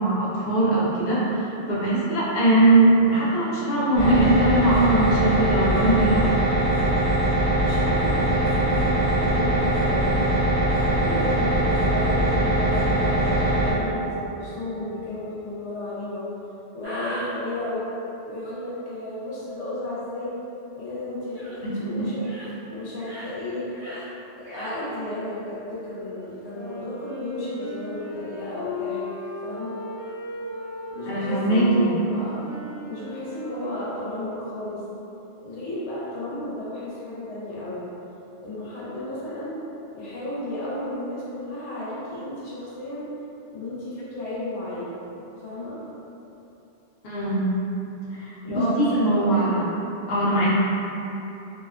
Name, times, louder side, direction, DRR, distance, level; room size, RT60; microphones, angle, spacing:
voice 1, 0.0-6.4 21.6-22.1 31.0-31.9 47.0-47.5 48.2-49.7 50.1-50.5, right 2 dB, 60° left, -7 dB, 0.8 m, -21 dB
sound 1, 3.9-13.7, right 1 dB, 10° right, 0.4 m, -22 dB
voice 2, 7.6-10.3 11.0-16.3 16.7-17.9 18.3-20.4 20.8-22.3 22.7-23.7 24.4-29.0 29.4-29.8 30.9-32.4 32.8-34.8 35.4-37.9 38.4-39.6 39.9-43.1 43.5-45.0 45.4-45.8 48.4-49.5, left 2 dB, 85° left, -8 dB, 1.0 m, -33 dB
sound 2, 16.8-17.3 21.3-21.6 22.1-22.5 22.9-23.3 23.7-24.1 24.4-24.8, right 1 dB, 75° right, 1.0 m, -37 dB
Wind instrument woodwind instrument, 26.4-35.0, left 2 dB, 25° right, 0.8 m, -36 dB
2.7 x 2.1 x 2.3 m, 3.0 s
omnidirectional pair, 1.2 m